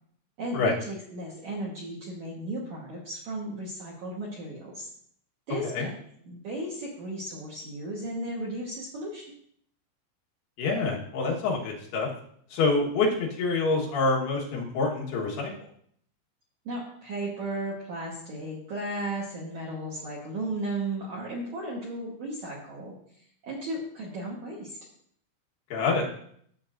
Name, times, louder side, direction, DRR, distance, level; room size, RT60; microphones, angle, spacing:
voice 1, 0.4-4.9 5.5-5.9 6.2-9.4 16.6-22.9 23.4-24.8, right 1 dB, 75° right, -4 dB, 1.7 m, -35 dB
voice 2, 10.6-12.1 12.5-15.5 25.7-26.0, left 3 dB, 65° left, -2 dB, 3.1 m, -26 dB
14.0 x 6.8 x 2.5 m, 0.66 s
omnidirectional pair, 5.3 m